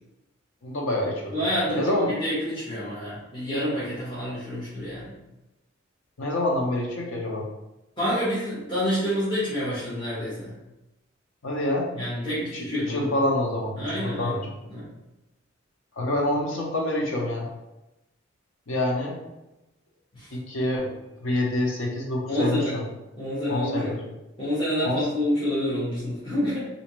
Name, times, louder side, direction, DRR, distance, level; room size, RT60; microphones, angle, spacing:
voice 1, 0.6-1.5 1.8-2.1 6.2-7.4 11.4-11.9 12.4-14.4 16.0-17.5 18.7-19.2 20.3-20.9 21.2-22.8 23.5-24.0 24.8-25.0, left 1 dB, 80° left, -1 dB, 0.8 m, -27 dB
voice 2, 1.3-1.9 2.2-5.2 8.0-10.5 11.9-13.1 13.8-14.4 14.7-14.9 20.1-20.3 22.3-22.7 23.2-23.9 24.4-26.7, equal, 25° left, -12 dB, 1.1 m, -28 dB
3.3 x 2.7 x 3.0 m, 0.97 s
head